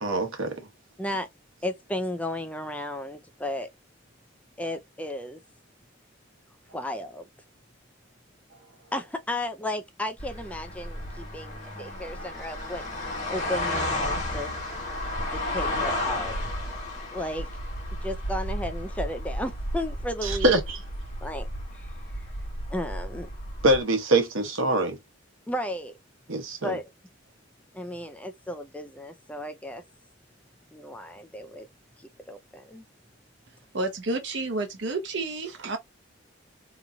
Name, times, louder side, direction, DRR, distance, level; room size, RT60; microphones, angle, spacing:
voice 1, 0.0-0.7 20.2-20.8 23.6-25.0 26.3-26.7, right 2 dB, 80° right, 1.0 m, -24 dB
voice 2, 1.6-3.7 4.6-5.4 6.7-7.3 8.9-14.6 15.3-16.4 17.1-17.5 18.0-20.5 21.2-21.5 21.7-21.9 22.7-23.3 25.5-26.0 26.6-26.9 27.7-29.8 30.7-31.7 32.0-32.8, left 1 dB, 5° left, 0.3 m, -34 dB
sound 1, 10.2-23.8, left 1 dB, 35° left, 1.3 m, -33 dB
voice 3, 33.7-35.8, right 2 dB, 60° right, 0.7 m, -30 dB
3.0 x 2.5 x 2.2 m
head